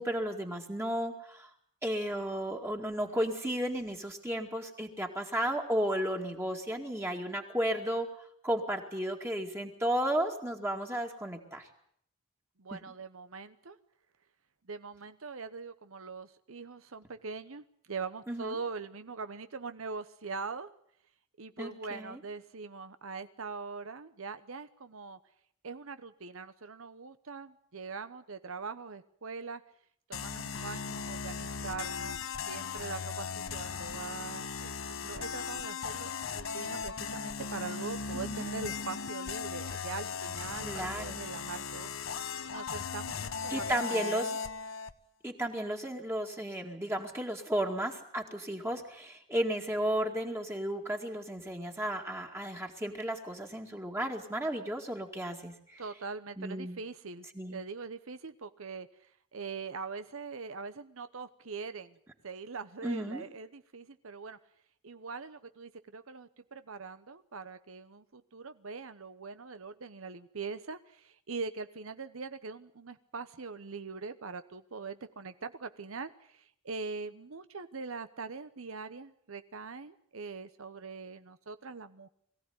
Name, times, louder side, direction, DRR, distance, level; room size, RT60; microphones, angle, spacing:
voice 1, 0.0-1.5 1.8-8.1 8.4-11.7 12.7-12.8 18.3-18.5 21.6-22.2 38.1-38.4 40.6-41.2 43.5-44.3 45.2-55.8 56.4-56.8 57.3-57.6 62.8-63.2, equal, 10° right, 1 dB, 2.2 m, -34 dB
voice 2, 12.6-13.8 14.7-20.7 21.4-25.2 25.6-29.6 30.1-32.2 32.5-34.7 35.0-41.9 42.5-44.4 55.8-57.3 57.5-58.9 59.3-62.0 62.2-64.4 64.8-82.1, right 4 dB, 80° right, 11 dB, 0.9 m, -42 dB
sound 1, 30.1-44.9, left 5 dB, 75° left, 1.0 m, -37 dB
22.5 x 16.0 x 9.5 m, 0.66 s
head